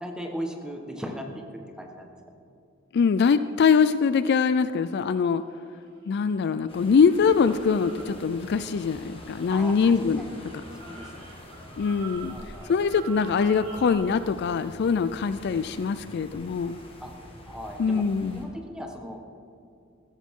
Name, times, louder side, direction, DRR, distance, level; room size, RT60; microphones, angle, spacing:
voice 1, 0.0-2.1 9.5-10.4 10.8-11.3 12.3-12.7 17.0-17.1 17.4-18.1 18.3-19.2, equal, 5° right, 2 dB, 1.3 m, -38 dB
voice 2, 2.9-5.4 6.1-10.2 11.8-12.4 12.7-16.8 17.8-18.4, left 5 dB, 55° left, 13 dB, 0.3 m, -23 dB
sound 1, 3.4-6.5 6.9-13.9, right 4 dB, 75° right, 3.4 m, -47 dB
sound 2, 6.7-18.5, left 1 dB, 25° left, 1.8 m, -46 dB
15.0 x 13.5 x 3.7 m, 2.5 s
head